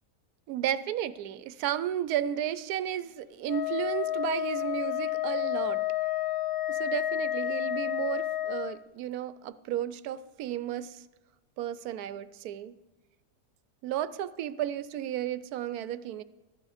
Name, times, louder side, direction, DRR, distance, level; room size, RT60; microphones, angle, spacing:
voice 1, 0.5-5.8 6.7-11.0 11.6-12.7 13.8-16.2, right 11 dB, 80° right, 1.1 m, -33 dB
Wind instrument woodwind instrument, 3.5-8.8, left 13 dB, 65° left, 0.5 m, -30 dB
13.5 x 11.5 x 4.9 m
omnidirectional pair, 1.6 m